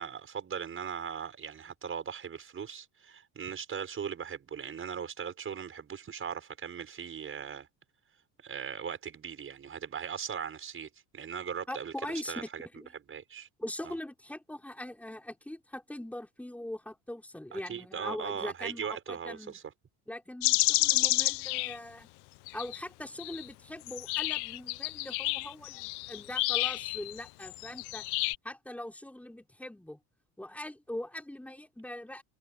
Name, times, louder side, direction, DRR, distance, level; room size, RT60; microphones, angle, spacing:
voice 1, 0.0-7.7 8.4-12.7 13.1-13.5 13.8-13.9 17.5-19.6, right 7 dB, 30° right, 6.3 m, -39 dB
voice 2, 11.7-12.5 12.8-12.9 13.6-19.6 20.1-22.1 22.5-28.1 28.4-30.0 30.4-32.2, left 1 dB, 5° left, 5.8 m, -41 dB
sound 1, 20.4-21.8 22.5-22.8 23.2-23.5 23.9-28.4, left 22 dB, 75° left, 0.9 m, -30 dB
cardioid pair, 130°, 39 cm